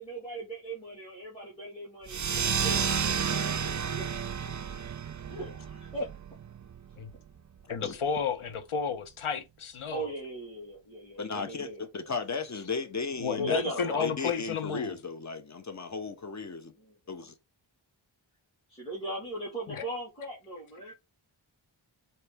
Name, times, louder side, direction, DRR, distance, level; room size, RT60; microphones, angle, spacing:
voice 1, 0.0-4.1 5.3-6.1 9.9-12.1 13.4-14.0 16.8-17.0 18.7-20.9, right 1 dB, 10° left, 1.9 m, -38 dB
sound 1, 2.1-7.2, right 7 dB, 40° right, 0.5 m, -31 dB
voice 2, 7.7-10.1 13.2-15.0 19.7-19.9, left 6 dB, 85° left, 0.8 m, -32 dB
voice 3, 11.2-13.6 14.0-16.7 17.1-17.3, left 4 dB, 35° left, 0.8 m, -35 dB
4.1 x 2.9 x 3.4 m
wide cardioid pair, 65°, 48 cm